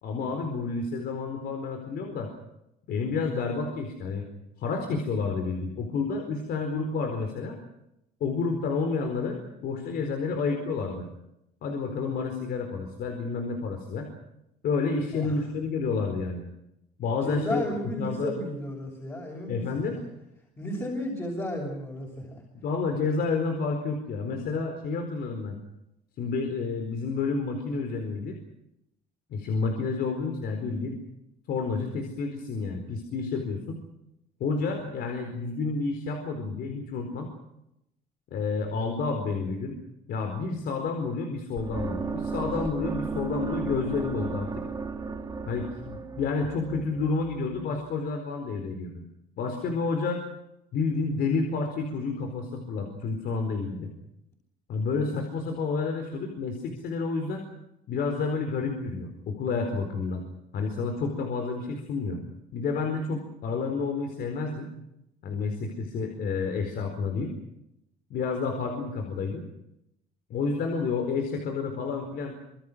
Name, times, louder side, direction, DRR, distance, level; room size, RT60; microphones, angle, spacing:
voice 1, 0.0-2.3 2.9-4.3 4.6-7.6 8.2-11.1 11.6-14.1 14.6-16.4 17.0-17.7 18.0-18.3 19.5-19.9 22.6-25.6 26.2-28.4 29.3-31.0 31.5-33.8 34.4-37.3 38.3-39.8 40.1-44.5 45.5-49.0 49.4-50.2 50.7-53.9 54.7-57.4 57.9-60.2 60.5-62.2 62.5-64.7 65.2-67.3 68.1-69.4 70.3-72.4, left 4 dB, 65° left, 4 dB, 4.4 m, -30 dB
voice 2, 15.1-15.4 17.2-19.8 20.6-22.4, left 1 dB, 15° left, -1 dB, 6.4 m, -33 dB
sound 1, 41.6-47.6, right 4 dB, 20° right, 2.8 m, -34 dB
25.5 x 24.5 x 6.4 m, 0.84 s
cardioid pair, 110°, 17 cm